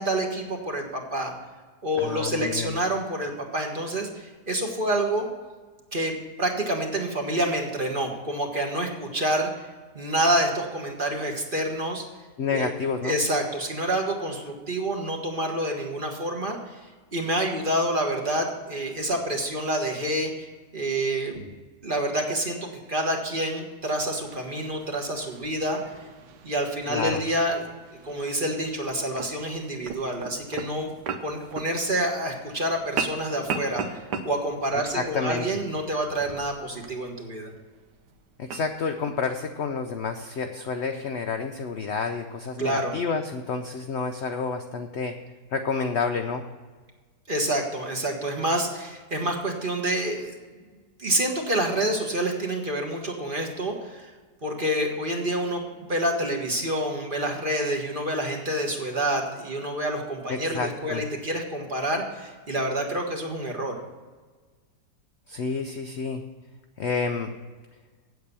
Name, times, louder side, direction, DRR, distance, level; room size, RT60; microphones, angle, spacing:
voice 1, 0.0-1.3 1.8-5.3 5.9-9.5 9.9-12.0 12.5-12.7 13.0-16.6 17.1-20.5 20.7-21.4 21.8-25.8 26.4-27.6 28.0-30.9 31.2-37.5 42.6-43.0 47.3-50.3 51.0-54.1 54.4-63.8, right 1 dB, 35° right, 1 dB, 1.4 m, -28 dB
voice 2, 2.0-2.7 12.4-13.2 26.9-27.2 34.8-35.4 38.4-45.1 45.5-46.4 60.3-61.0 65.3-66.2 66.8-67.3, left 5 dB, 60° left, 6 dB, 0.7 m, -29 dB
sound 1, 24.0-39.2, right 5 dB, 85° right, 1.5 m, -39 dB
8.5 x 8.0 x 6.8 m, 1.4 s
omnidirectional pair, 1.8 m